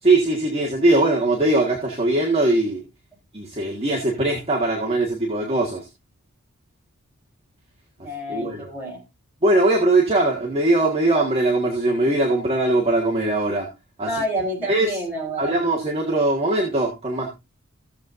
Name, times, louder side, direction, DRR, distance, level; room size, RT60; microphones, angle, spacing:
voice 1, 0.0-2.8 3.3-5.9 8.3-8.7 9.4-13.7 14.0-14.2 14.7-15.0 15.4-17.3, right 2 dB, 25° right, -2 dB, 1.6 m, -21 dB
voice 2, 8.0-9.0 14.1-15.6, right 1 dB, 10° right, -2 dB, 3.7 m, -28 dB
16.0 x 7.3 x 2.6 m, 0.25 s
head